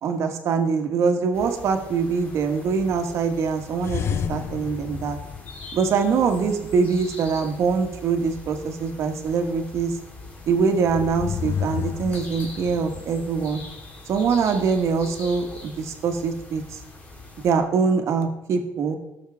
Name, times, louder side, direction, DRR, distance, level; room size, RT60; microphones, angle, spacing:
voice 1, 0.0-4.0 4.3-5.2 5.7-10.0 10.5-13.6 14.1-16.8 17.4-19.0, right 5 dB, 55° right, 5 dB, 1.6 m, -23 dB
sound 1, 1.3-17.5, left 3 dB, 25° left, 2.4 m, -42 dB
Ambient Horror Noises, 3.8-6.2 10.7-13.0, left 8 dB, 50° left, 0.5 m, -31 dB
17.0 x 6.5 x 3.5 m, 0.97 s
cardioid pair, 115°, 6 cm